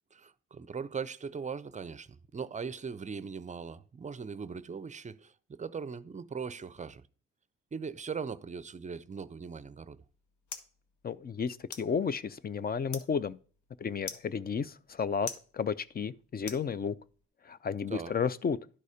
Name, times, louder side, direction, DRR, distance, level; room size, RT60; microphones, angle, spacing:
voice 1, 0.1-7.0 7.7-10.0 17.9-18.1, right 5 dB, 25° right, 0.5 m, -40 dB
sound 1, 9.7-17.2, left 5 dB, 75° left, 1.2 m, -48 dB
voice 2, 11.0-13.4 13.8-15.3 15.5-16.9 17.5-18.6, left 6 dB, 30° left, 0.5 m, -32 dB
11.5 x 4.1 x 5.0 m
cardioid pair, 90°, 30 cm